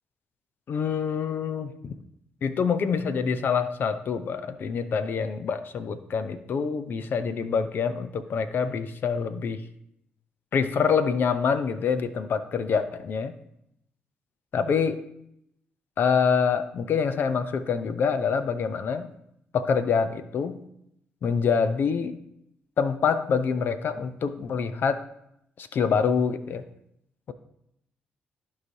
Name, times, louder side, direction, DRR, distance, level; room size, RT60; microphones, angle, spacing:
voice 1, 0.7-1.9 2.4-9.6 10.5-13.3 14.5-15.0 16.0-19.1 19.5-20.6 21.2-22.2 22.8-25.0 25.6-26.6, left 6 dB, 60° left, 11 dB, 0.6 m, -26 dB
14.0 x 4.9 x 2.7 m, 0.77 s
supercardioid pair, 65°, 4 cm